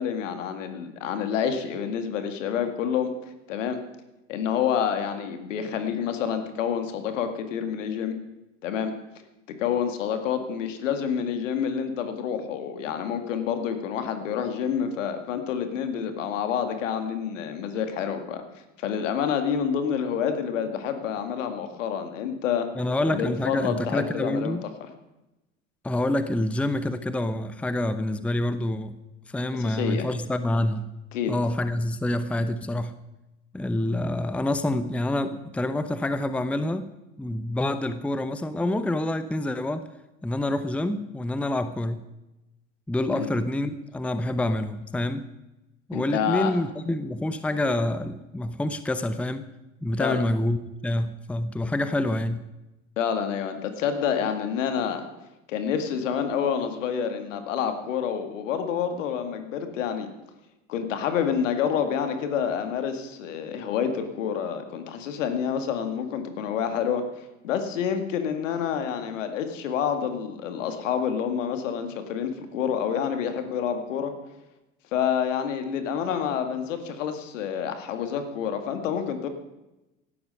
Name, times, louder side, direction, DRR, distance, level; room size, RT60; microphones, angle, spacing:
voice 1, 0.0-3.1 3.5-3.8 4.3-8.2 8.6-8.9 9.5-18.4 18.8-22.7 23.1-24.6 29.5-30.1 31.1-31.3 43.1-43.3 45.9-46.6 50.0-50.2 53.0-55.1 55.5-60.1 60.7-74.1 74.9-79.3, left 8 dB, 70° left, 8 dB, 2.1 m, -28 dB
voice 2, 22.8-24.6 25.8-28.9 29.3-30.9 31.3-32.9 33.5-36.9 37.2-39.9 40.2-42.0 42.9-45.2 45.9-49.4 49.8-52.4, left 1 dB, 5° left, 12 dB, 0.8 m, -27 dB
16.5 x 12.0 x 5.6 m, 0.97 s
figure-of-eight pair, 75°, 39 cm